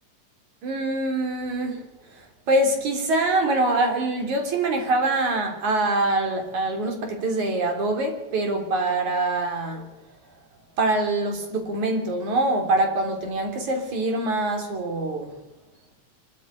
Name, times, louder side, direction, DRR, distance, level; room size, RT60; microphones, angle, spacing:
voice 1, 0.6-9.9 10.8-15.3, right 2 dB, 80° right, 4.9 m, -24 dB
26.0 x 13.0 x 8.1 m
omnidirectional pair, 3.3 m